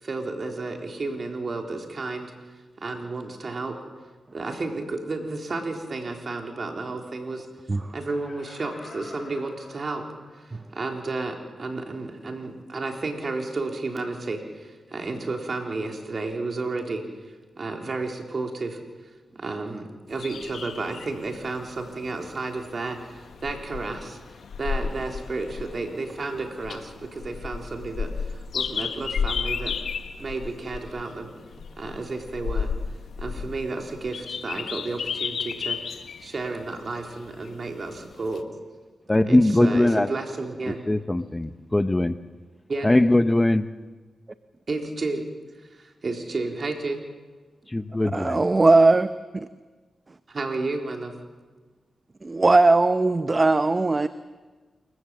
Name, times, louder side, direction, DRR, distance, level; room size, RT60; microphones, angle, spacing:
voice 1, 0.0-2.3 2.8-3.8 4.3-7.5 7.9-10.1 10.3-18.8 19.4-24.2 24.6-29.8 30.2-31.3 31.8-32.7 33.2-38.5 39.3-40.8 42.7-42.9 44.7-45.2 45.6-47.0 50.3-51.2, right 3 dB, 55° right, 3.8 m, -32 dB
Laughter, 7.9-10.5 11.0-11.1, left 3 dB, 60° left, 5.2 m, -47 dB
sound 1, 20.1-38.4, left 6 dB, 75° left, 1.3 m, -33 dB
voice 2, 39.1-40.1 40.9-42.1 42.8-43.6 47.7-48.4, left 1 dB, 20° left, 0.9 m, -20 dB
voice 3, 48.1-49.1 49.3-49.5 52.2-54.1, right 3 dB, 35° right, 0.8 m, -19 dB
28.0 x 14.5 x 7.7 m
supercardioid pair, 45°, 0 cm